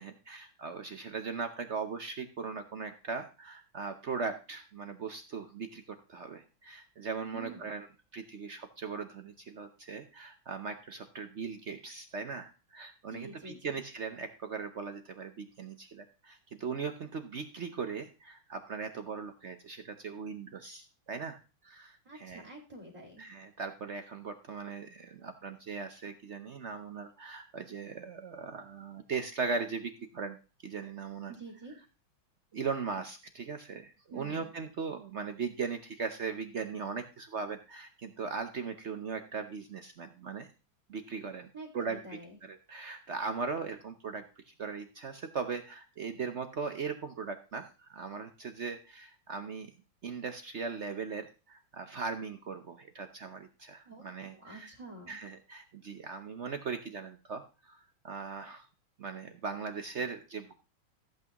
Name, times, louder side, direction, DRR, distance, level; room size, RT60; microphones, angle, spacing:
voice 1, 0.0-7.9 8.1-21.4 21.6-22.4 23.2-30.4 30.6-31.3 32.5-40.5 40.9-41.5 41.7-42.2 42.5-49.7 50.0-54.7 55.1-58.7 59.0-60.5, right 5 dB, 65° right, 8 dB, 0.6 m, -39 dB
voice 2, 7.3-7.7 13.1-13.8 22.0-23.2 31.3-31.7 34.1-34.5 41.5-42.4 53.9-55.2, right 2 dB, 15° right, -2 dB, 2.2 m, -47 dB
14.5 x 8.3 x 3.0 m, 0.33 s
omnidirectional pair, 2.3 m